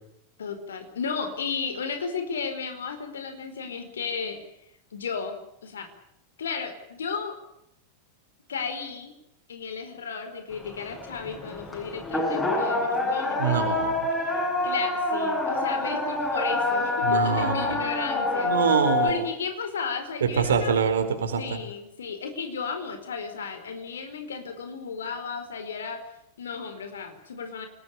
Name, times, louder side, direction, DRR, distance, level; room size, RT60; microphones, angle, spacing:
voice 1, 0.4-4.4 4.9-5.9 6.4-7.4 8.5-9.1 9.5-13.4 14.2-18.5 19.0-20.7 21.4-26.0 26.4-27.7, left 5 dB, 65° left, 8 dB, 4.7 m, -34 dB
sound 1, 10.5-19.1, left 2 dB, 15° left, 7.7 m, -27 dB
voice 2, 13.4-14.1 17.0-17.8 18.4-19.2 20.2-21.6, right 6 dB, 65° right, 8 dB, 4.4 m, -25 dB
28.5 x 20.0 x 7.1 m, 0.79 s
figure-of-eight pair, 90°, 0 cm